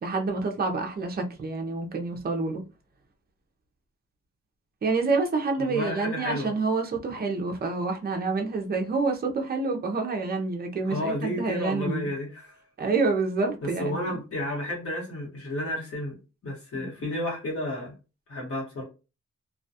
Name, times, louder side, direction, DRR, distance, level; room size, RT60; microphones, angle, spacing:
voice 1, 0.0-2.6 4.8-12.1 12.8-14.1 16.7-17.0, right 3 dB, 30° right, 0.5 m, -28 dB
voice 2, 5.7-6.5 10.9-12.6 13.8-16.1 16.4-17.9 18.3-18.8, left 1 dB, 45° left, 1.1 m, -31 dB
2.3 x 2.2 x 2.6 m
wide cardioid pair, 140°, 31 cm